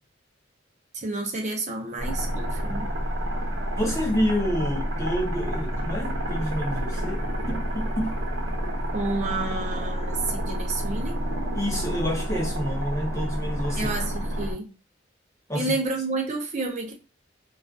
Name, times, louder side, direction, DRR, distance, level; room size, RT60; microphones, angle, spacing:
voice 1, 0.9-2.9 8.9-11.2 13.7-14.7 15.5-16.9, right 3 dB, 40° right, 0.5 m, -30 dB
sound 1, 2.0-14.5, equal, 80° right, 0.8 m, -29 dB
voice 2, 3.7-8.2 11.5-13.9 15.5-15.7, equal, 15° left, 0.5 m, -28 dB
2.3 x 2.3 x 2.3 m
head